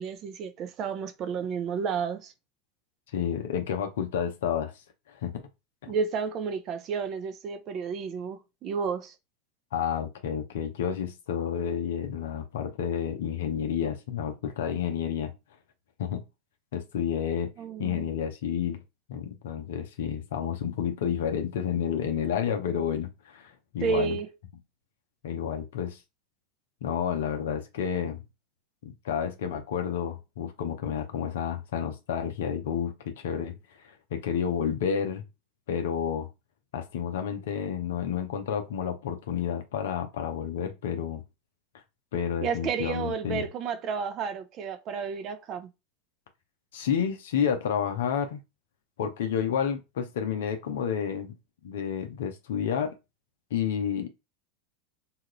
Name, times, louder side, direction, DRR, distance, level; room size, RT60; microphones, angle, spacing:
voice 1, 0.0-2.3 5.9-9.1 17.6-18.1 23.8-24.3 42.4-45.7, right 6 dB, 40° right, 0.6 m, -31 dB
voice 2, 3.1-4.7 5.1-5.5 5.8-5.9 9.7-15.3 16.0-16.2 16.7-17.5 17.8-18.8 19.1-24.2 25.2-26.0 26.8-28.2 28.8-33.6 33.8-35.2 35.7-36.3 36.7-41.2 42.1-43.5 46.7-48.4 49.0-51.3 51.6-52.9 53.5-54.1, left 8 dB, 70° left, 0.6 m, -30 dB
2.8 x 2.4 x 3.0 m
figure-of-eight pair, 85°, 0 cm